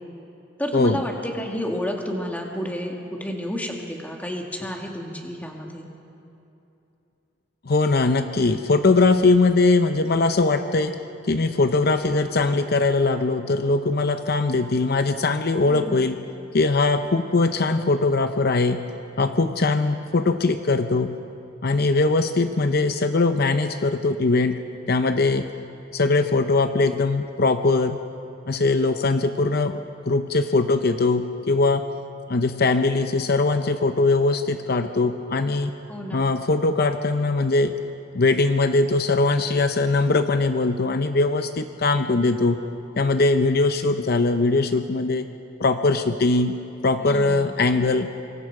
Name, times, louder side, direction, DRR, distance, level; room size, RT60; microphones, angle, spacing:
voice 1, 0.6-5.9 15.6-16.1 35.9-36.3 47.0-47.5, equal, 10° left, 0 dB, 2.2 m, -31 dB
voice 2, 7.6-10.9 11.3-16.2 16.5-18.9 19.2-21.1 21.6-24.6 24.9-25.5 25.9-28.0 28.5-29.8 30.0-31.9 32.3-35.7 36.1-37.7 38.1-42.6 43.0-45.2 45.6-46.5 46.8-48.1, left 3 dB, 55° left, 8 dB, 0.7 m, -21 dB
25.5 x 24.5 x 4.9 m, 2.8 s
head